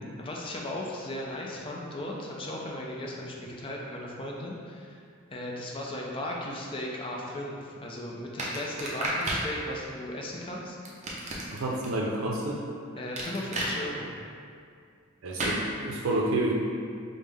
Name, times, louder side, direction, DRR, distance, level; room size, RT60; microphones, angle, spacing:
voice 1, 0.2-5.0 5.3-10.8 13.0-14.1, left 1 dB, 25° left, -2 dB, 0.4 m, -36 dB
sound 1, 8.4-9.5 10.9-11.9 13.2-13.7 15.4-15.6, right 1 dB, 35° right, 0.6 m, -31 dB
voice 2, 11.5-12.6 15.2-16.5, right 2 dB, 85° right, -2 dB, 0.5 m, -29 dB
5.2 x 2.1 x 3.3 m, 2.3 s
head